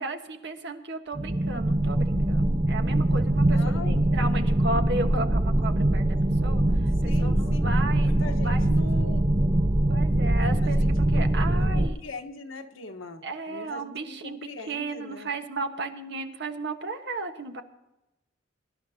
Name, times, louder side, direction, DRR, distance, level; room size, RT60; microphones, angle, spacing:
voice 1, 0.0-6.6 7.0-8.7 9.9-12.0 13.2-14.4 14.7-17.6, right 2 dB, 60° right, 6 dB, 1.4 m, -34 dB
sound 1, 1.1-11.9, right 1 dB, 25° right, 0.6 m, -23 dB
voice 2, 3.5-4.2 7.0-7.7 8.1-9.4 10.3-10.5 10.8-15.3, left 3 dB, 90° left, 5 dB, 1.4 m, -41 dB
24.0 x 11.5 x 2.9 m, 0.94 s
head